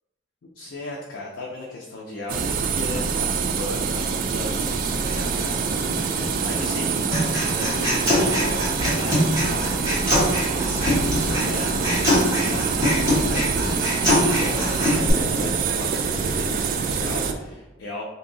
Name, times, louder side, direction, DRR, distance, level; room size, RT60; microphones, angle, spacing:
voice 1, 0.4-6.1 6.4-7.0 7.3-10.2 10.5-18.0, left 2 dB, 65° left, -2 dB, 0.5 m, -36 dB
sound 1, 2.3-17.3, right 5 dB, 45° right, 0.3 m, -25 dB
sound 2, 4.5-15.6, equal, 25° left, 0.8 m, -34 dB
Human voice, 7.1-15.1, left 1 dB, 15° right, 1.4 m, -23 dB
2.8 x 2.6 x 3.8 m, 1.1 s
head